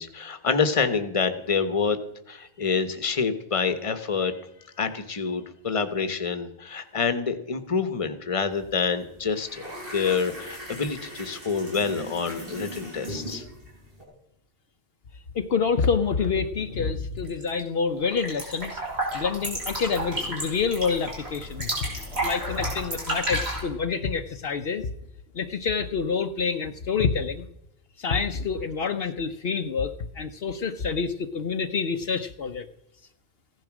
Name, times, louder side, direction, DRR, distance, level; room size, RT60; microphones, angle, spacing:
voice 1, 0.0-2.0 2.3-4.3 4.8-9.6 9.9-13.4, left 5 dB, 30° left, 10 dB, 1.1 m, -27 dB
sound 1, 8.5-8.7 9.0-14.0, right 1 dB, 60° right, 5.3 m, -39 dB
voice 2, 15.3-18.8 19.1-21.7 22.2-24.9 25.3-27.4 28.0-32.6, left 5 dB, 65° left, 8 dB, 1.0 m, -27 dB
sound 2, 17.2-17.6 17.9-23.6, right 1 dB, 75° right, 5.8 m, -31 dB
15.5 x 11.0 x 6.1 m, 0.82 s
omnidirectional pair, 1.1 m